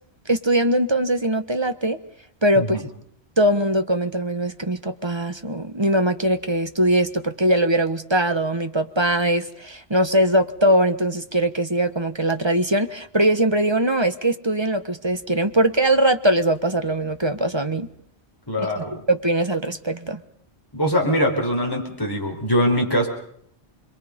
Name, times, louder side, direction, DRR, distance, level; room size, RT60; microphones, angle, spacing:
voice 1, 0.3-2.0 2.4-2.8 3.4-17.9 18.6-20.2, right 1 dB, 25° right, 8 dB, 1.4 m, -21 dB
voice 2, 2.5-2.9 18.5-19.0 20.7-23.1, equal, 20° left, 1 dB, 4.4 m, -22 dB
29.5 x 22.5 x 5.4 m, 0.68 s
omnidirectional pair, 1.1 m